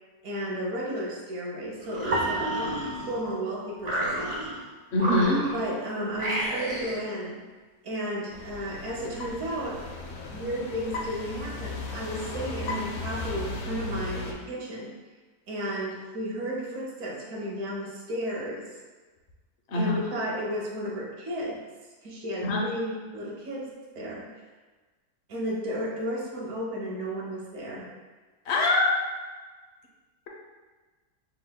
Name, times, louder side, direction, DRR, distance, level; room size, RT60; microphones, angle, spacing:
voice 1, 0.2-4.4 5.5-7.5 7.8-9.8 10.3-15.0 15.5-18.7 19.7-21.6 22.0-24.3 25.3-27.9, equal, 60° right, -4 dB, 1.3 m, -33 dB
sound 1, 1.8-3.3 3.8-4.6 4.9-5.8 6.1-7.1, right 1 dB, 25° right, 1.1 m, -32 dB
sound 2, 2.1-4.6, right 2 dB, 80° right, 0.5 m, -34 dB
voice 2, 4.9-5.5 19.7-19.9 22.4-22.7 28.5-29.0, left 2 dB, 50° left, -1 dB, 0.9 m, -23 dB
sound 3, 8.3-14.3, left 2 dB, 70° left, 1.1 m, -36 dB
5.4 x 3.8 x 2.2 m, 1.3 s
omnidirectional pair, 1.7 m